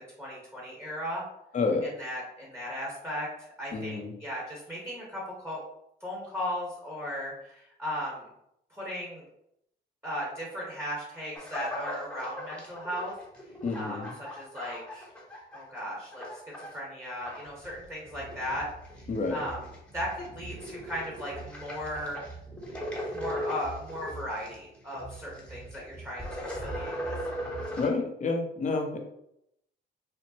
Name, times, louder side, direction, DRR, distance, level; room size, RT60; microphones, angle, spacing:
voice 1, 0.2-1.2 1.8-3.3 3.6-5.6 6.0-8.3 8.7-9.2 10.0-13.1 13.7-15.1 15.5-18.7 19.3-19.6 19.9-22.2 23.1-27.1, equal, 15° right, -4 dB, 1.3 m, -36 dB
voice 2, 3.7-4.1 13.6-14.1 19.1-19.4 27.8-29.0, left 3 dB, 40° left, 3 dB, 0.7 m, -29 dB
sound 1, 11.3-15.8 16.1-16.8 17.1-27.9, equal, 5° left, 1.0 m, -39 dB
4.4 x 2.1 x 2.8 m, 0.77 s
cardioid pair, 90°, 20 cm